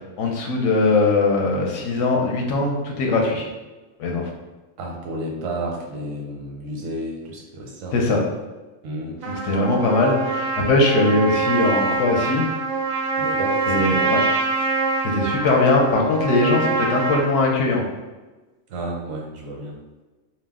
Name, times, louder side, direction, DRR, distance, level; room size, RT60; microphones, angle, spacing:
voice 1, 0.2-3.5 4.0-4.3 7.9-8.2 9.3-12.5 13.7-14.2 15.0-17.8, left 2 dB, 75° left, 0 dB, 0.9 m, -20 dB
voice 2, 4.8-8.0 8.8-9.2 13.2-14.1 18.7-19.8, right 1 dB, 80° right, 0 dB, 1.0 m, -31 dB
Trumpet, 9.2-17.3, right 3 dB, 65° right, 0.5 m, -24 dB
2.5 x 2.0 x 3.4 m, 1.2 s
omnidirectional pair, 1.3 m